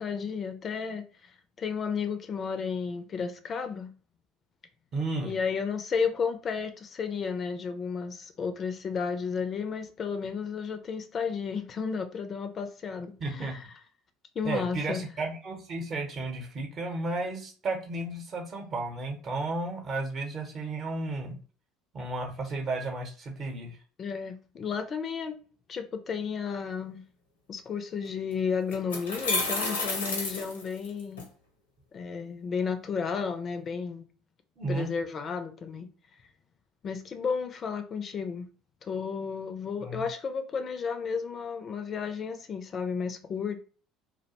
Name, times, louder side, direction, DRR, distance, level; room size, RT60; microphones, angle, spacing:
voice 1, 0.0-3.9 5.2-13.6 14.4-15.0 24.0-25.4 25.7-27.0 27.5-31.2 31.9-34.1 34.7-35.9 36.8-38.5 38.8-43.6, left 6 dB, 40° left, 0.4 m, -33 dB
voice 2, 4.9-5.4 13.2-13.6 14.4-21.4 21.9-23.8 34.6-34.9 39.8-40.0, right 2 dB, 45° right, 0.8 m, -33 dB
sound 1, 28.0-28.1 28.7-31.2, left 3 dB, 85° left, 0.6 m, -30 dB
2.4 x 2.1 x 2.8 m
hypercardioid pair, 65°, 0 cm